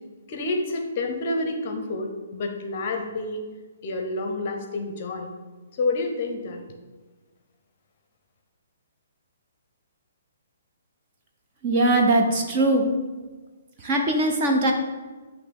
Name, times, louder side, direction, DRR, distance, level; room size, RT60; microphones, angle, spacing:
voice 1, 0.3-3.4 3.8-5.3 5.8-6.6, left 2 dB, 30° left, 4 dB, 0.7 m, -28 dB
voice 2, 11.6-12.9 13.8-14.7, right 1 dB, 20° right, 2 dB, 0.5 m, -21 dB
8.2 x 3.1 x 5.2 m, 1.3 s
hypercardioid pair, 175°, 0 cm